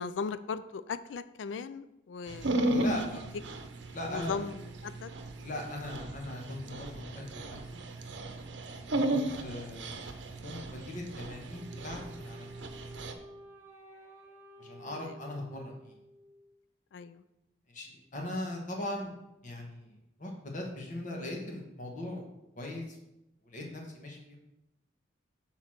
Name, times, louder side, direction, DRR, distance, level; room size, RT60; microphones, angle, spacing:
voice 1, 0.0-2.7 4.1-5.1 9.0-9.1 14.9-15.1 16.9-17.2, left 5 dB, 80° left, 14 dB, 0.4 m, -38 dB
Dog, 2.3-13.1, right 1 dB, 75° right, 0.7 m, -35 dB
voice 2, 2.7-3.2 3.9-4.4 5.4-7.8 8.9-10.0 10.2-12.5 14.6-15.9 17.7-19.1 19.4-22.2 22.6-23.0 23.4-24.2, left 1 dB, 45° left, 0 dB, 1.3 m, -39 dB
Wind instrument woodwind instrument, 11.5-16.5, equal, 15° right, 1.3 m, -52 dB
6.5 x 4.0 x 6.1 m, 0.89 s
head